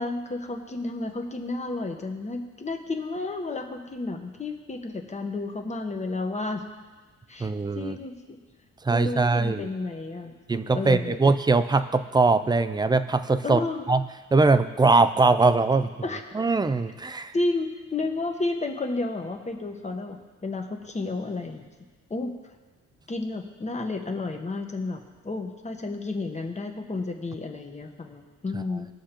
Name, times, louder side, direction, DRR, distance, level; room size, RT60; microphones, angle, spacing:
voice 1, 0.0-6.6 7.3-8.4 8.9-10.3 10.7-11.2 13.4-13.9 16.0-16.2 17.3-21.7 22.1-22.3 23.1-25.0 25.2-28.9, left 3 dB, 25° left, 4 dB, 1.0 m, -31 dB
voice 2, 7.4-8.0 8.8-9.7 10.5-14.0 14.3-15.9 16.3-17.3 28.5-28.6, right 3 dB, 15° right, 11 dB, 0.4 m, -22 dB
19.5 x 6.5 x 2.9 m, 1.3 s
cardioid pair, 130°, 30 cm